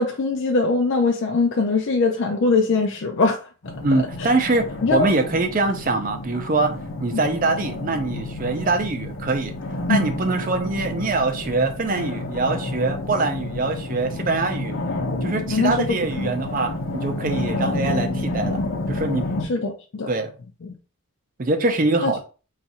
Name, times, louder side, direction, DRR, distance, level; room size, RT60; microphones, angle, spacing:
voice 1, 0.0-3.4 4.8-5.1 9.9-10.1 15.5-16.3 19.5-20.1 20.6-20.8 22.0-22.1, left 3 dB, 60° left, 0.4 m, -21 dB
sound 1, 3.6-19.5, left 1 dB, 80° left, 0.8 m, -30 dB
voice 2, 3.8-9.5 9.9-14.7 15.2-18.6 18.9-19.3 20.1-20.3 21.4-22.2, right 3 dB, 40° right, 0.5 m, -23 dB
2.6 x 2.4 x 4.2 m
head